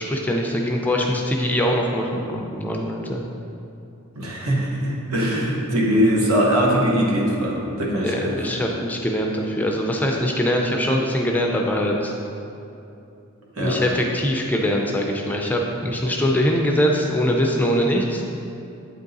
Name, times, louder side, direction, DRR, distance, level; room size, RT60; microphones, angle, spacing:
voice 1, 0.0-3.2 8.0-12.1 13.6-18.2, equal, 10° left, 0 dB, 0.4 m, -22 dB
voice 2, 4.2-8.4 13.6-13.8, equal, 75° right, -3 dB, 1.2 m, -21 dB
8.4 x 3.6 x 4.0 m, 2.7 s
head